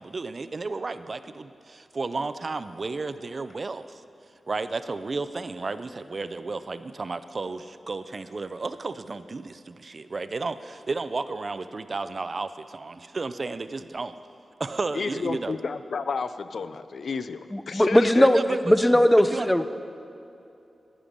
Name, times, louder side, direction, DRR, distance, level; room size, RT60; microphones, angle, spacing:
voice 1, 0.0-4.0 4.5-14.1 14.6-15.6 18.3-18.6 18.9-19.0 19.3-19.5, right 3 dB, 45° right, 12 dB, 0.4 m, -32 dB
voice 2, 14.9-18.3, left 4 dB, 70° left, 12 dB, 0.4 m, -31 dB
voice 3, 17.5-18.4 18.7-19.7, left 1 dB, 10° left, 10 dB, 0.4 m, -19 dB
11.0 x 10.0 x 5.2 m, 2.7 s
wide cardioid pair, 105°, 0 cm